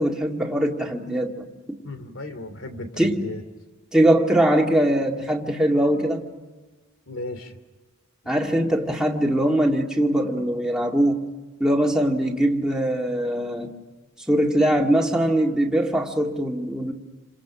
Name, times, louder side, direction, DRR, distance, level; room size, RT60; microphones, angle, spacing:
voice 1, 0.0-1.5 3.0-3.2 3.9-6.3 8.3-11.2 11.6-13.7 14.3-16.9, right 1 dB, 5° right, -1 dB, 2.4 m, -21 dB
voice 2, 1.8-3.4 7.1-7.5, left 1 dB, 75° left, 10 dB, 3.0 m, -35 dB
29.0 x 27.0 x 6.3 m, 1.3 s
head